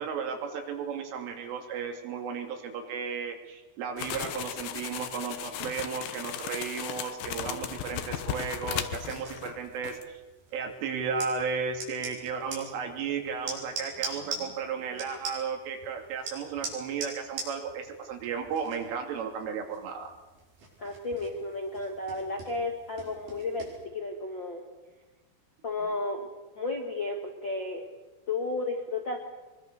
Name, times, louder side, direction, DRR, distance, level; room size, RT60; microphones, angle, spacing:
voice 1, 0.0-10.2 10.5-20.1, right 6 dB, 75° right, 4 dB, 5.1 m, -34 dB
sound 1, 4.0-9.6 9.8-10.0, left 10 dB, 70° left, 2.2 m, -36 dB
sound 2, 8.7-23.8, right 3 dB, 50° right, 7.4 m, -43 dB
voice 2, 20.8-24.6 25.6-26.3 26.5-27.8 28.3-29.2, left 2 dB, 85° left, 0 dB, 1.0 m, -33 dB
24.0 x 23.0 x 6.7 m, 1.2 s
omnidirectional pair, 5.7 m